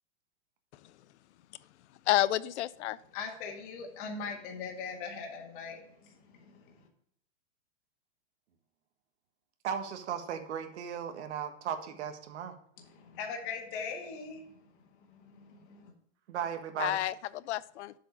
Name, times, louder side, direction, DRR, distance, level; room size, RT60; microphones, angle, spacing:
voice 1, 2.1-3.0 16.8-17.9, left 14 dB, 70° left, 19 dB, 0.5 m, -30 dB
voice 2, 3.1-6.8 12.8-14.7 15.0-15.9, left 5 dB, 45° left, 1 dB, 1.7 m, -41 dB
voice 3, 9.6-12.6 16.3-17.0, right 8 dB, 70° right, 7 dB, 1.4 m, -36 dB
7.6 x 4.9 x 4.9 m, 0.69 s
supercardioid pair, 155°, 35 cm